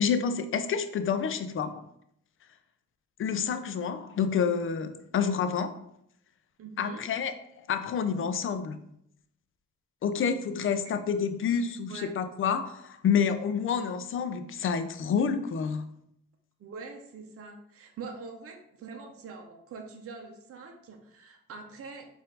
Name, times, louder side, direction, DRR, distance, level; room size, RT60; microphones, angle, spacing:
voice 1, 0.0-1.7 3.2-5.8 6.8-8.8 10.0-15.9, left 6 dB, 45° left, 10 dB, 0.5 m, -28 dB
voice 2, 6.6-7.0 11.9-12.1 16.6-22.1, right 4 dB, 50° right, 2 dB, 0.7 m, -44 dB
4.3 x 2.6 x 3.8 m, 0.73 s
cardioid pair, 90°, 30 cm